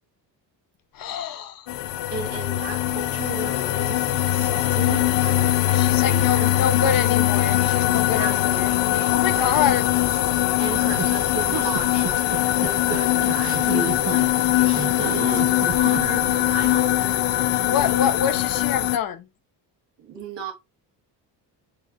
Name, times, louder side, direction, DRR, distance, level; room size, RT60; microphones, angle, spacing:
voice 1, 0.9-1.7 5.7-8.7 9.1-9.9 17.6-19.2, left 8 dB, 55° left, 0.9 m, -26 dB
sound 1, 1.7-19.0, left 14 dB, 80° left, 0.7 m, -21 dB
voice 2, 2.1-6.5 7.3-9.6 9.9-10.0 10.6-17.9 20.0-20.5, right 5 dB, 80° right, 1.9 m, -36 dB
sound 2, 11.0-16.3, right 5 dB, 40° right, 1.0 m, -31 dB
4.6 x 3.9 x 2.5 m
cardioid pair, 130°, 42 cm